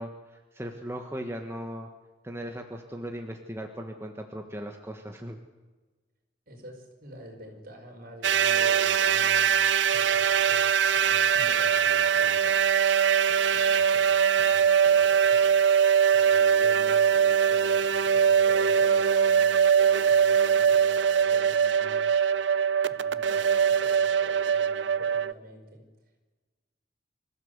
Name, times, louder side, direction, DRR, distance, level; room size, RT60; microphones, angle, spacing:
voice 1, 0.0-1.9 2.2-5.4, equal, 15° right, 3 dB, 1.5 m, -38 dB
voice 2, 6.5-9.5 9.9-12.8 13.3-14.0 14.4-15.5 16.1-22.4 22.9-25.8, equal, 55° right, 3 dB, 5.5 m, -47 dB
sound 1, 8.2-25.3, right 7 dB, 70° right, 0.6 m, -22 dB
25.5 x 15.0 x 8.2 m, 1.3 s
head